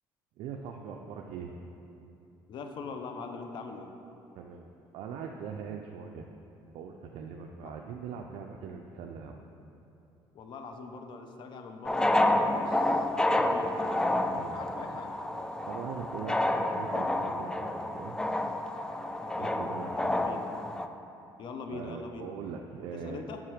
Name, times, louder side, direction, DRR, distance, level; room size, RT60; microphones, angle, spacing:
voice 1, 0.4-1.6 4.4-6.3 6.7-9.4 14.3-14.6 15.7-18.2 19.3-20.3 21.7-23.2, right 6 dB, 75° right, 2 dB, 0.5 m, -41 dB
voice 2, 2.5-3.9 10.3-13.8 14.5-15.2 19.2-19.6 20.0-20.4 21.4-22.3 22.9-23.4, left 4 dB, 55° left, 5 dB, 0.7 m, -42 dB
sound 1, 11.9-20.9, left 1 dB, 10° left, 0.3 m, -29 dB
7.3 x 5.8 x 5.0 m, 2.8 s
cardioid pair, 115°, 10 cm